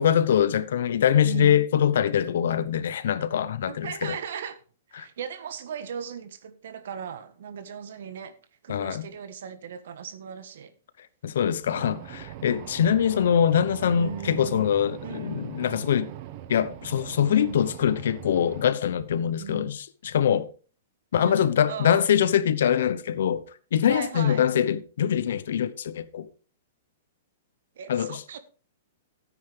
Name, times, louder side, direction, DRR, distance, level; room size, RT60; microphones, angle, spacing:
voice 1, 0.0-4.1 5.0-5.1 8.7-9.1 11.2-16.1 16.5-20.5 21.1-23.4 23.7-26.3 27.9-28.2, left 9 dB, 75° left, 1.0 m, -23 dB
voice 2, 1.2-1.6 3.7-4.6 4.9-8.4 8.6-10.7 12.4-12.7 13.9-14.7 15.0-15.5 17.3-17.6 19.4-19.7 21.2-22.0 23.9-24.4 27.7-28.4, right 7 dB, 70° right, 1.5 m, -37 dB
sound 1, 11.7-18.6, right 12 dB, 45° right, 0.9 m, -41 dB
13.0 x 9.3 x 3.4 m
hypercardioid pair, 150°, 0 cm